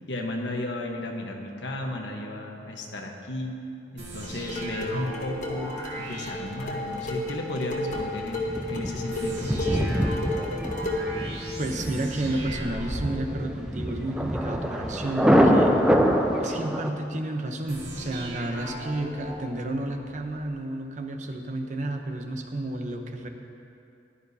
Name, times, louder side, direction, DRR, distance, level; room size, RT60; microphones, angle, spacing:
voice 1, 0.1-3.6 3.9-10.0, left 1 dB, 90° left, 1 dB, 1.2 m, -34 dB
sound 1, 4.0-7.2 9.1-14.3 17.7-20.3, right 1 dB, 80° right, 2.2 m, -38 dB
sound 2, 4.2-11.2, left 1 dB, 45° left, 1.4 m, -33 dB
Thunder, 7.9-16.9, equal, 5° right, 0.6 m, -25 dB
voice 2, 11.6-15.8 16.4-23.3, right 1 dB, 45° right, 4 dB, 0.8 m, -31 dB
15.5 x 11.5 x 2.8 m, 2.6 s
head